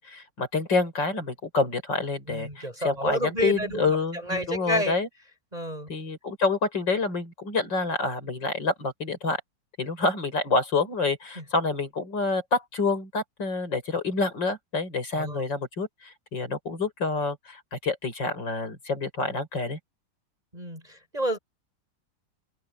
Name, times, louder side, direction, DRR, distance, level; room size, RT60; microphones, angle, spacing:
voice 1, 0.0-5.1 5.9-9.4 9.8-19.8, left 3 dB, 80° left, 6.1 m, -28 dB
voice 2, 2.3-3.9 4.3-5.0 5.5-5.9 15.1-15.4 20.5-20.8 21.1-21.4, right 1 dB, 20° right, 5.6 m, -29 dB
omnidirectional pair, 1.9 m